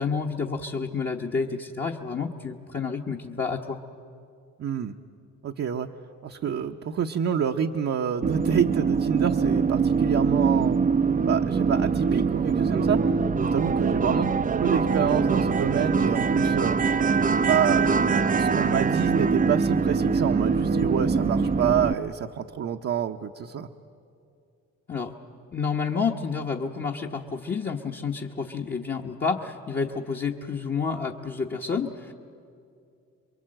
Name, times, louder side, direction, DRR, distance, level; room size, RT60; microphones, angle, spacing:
voice 1, 0.0-3.8 24.9-25.1 25.5-32.1, left 5 dB, 30° left, -1 dB, 1.1 m, -29 dB
voice 2, 4.6-4.9 5.4-5.9 6.2-10.9 11.2-13.0 13.4-14.3 14.6-16.8 17.4-17.9 18.4-23.7, right 8 dB, 55° right, 2 dB, 0.9 m, -27 dB
sound 1, 8.2-21.9, right 5 dB, 30° right, 0.6 m, -23 dB
27.5 x 23.0 x 7.7 m, 2.5 s
cardioid pair, 90°, 30 cm